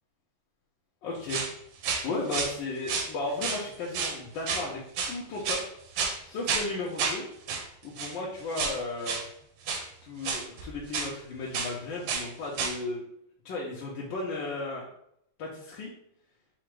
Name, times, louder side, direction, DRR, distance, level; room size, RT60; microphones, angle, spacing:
voice 1, 1.0-1.4 2.0-4.8 5.1-5.6 6.2-9.2 10.0-13.0 13.4-14.9 15.4-15.9, left 3 dB, 75° left, -4 dB, 1.5 m, -35 dB
sound 1, 1.3-1.5 1.8-2.5 2.9-3.6 3.9-4.2 4.5-4.7 5.0-5.7 6.0-6.2 6.5-6.7 7.0-7.2 7.5-7.7 8.0-8.1 8.5-8.8 9.0-9.3 9.7-9.9 10.2-11.1 11.5-11.7 12.1-12.3 12.5-12.8, right 5 dB, 85° right, 1.5 m, -30 dB
4.8 x 2.1 x 4.5 m, 0.71 s
omnidirectional pair, 2.2 m